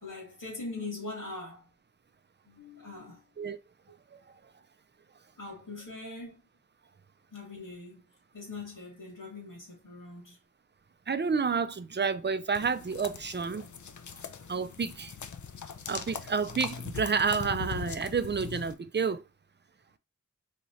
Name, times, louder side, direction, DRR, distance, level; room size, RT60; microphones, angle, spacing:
voice 1, 0.0-1.7 2.5-3.2 5.4-6.4 7.3-8.0 8.3-10.4, left 3 dB, 85° left, 1.9 m, -42 dB
voice 2, 11.1-13.7 14.5-15.1 15.9-19.2, right 5 dB, 35° right, 0.4 m, -30 dB
sound 1, 12.5-18.7, left 6 dB, 65° left, 0.5 m, -41 dB
3.6 x 3.1 x 2.7 m
wide cardioid pair, 45°, 32 cm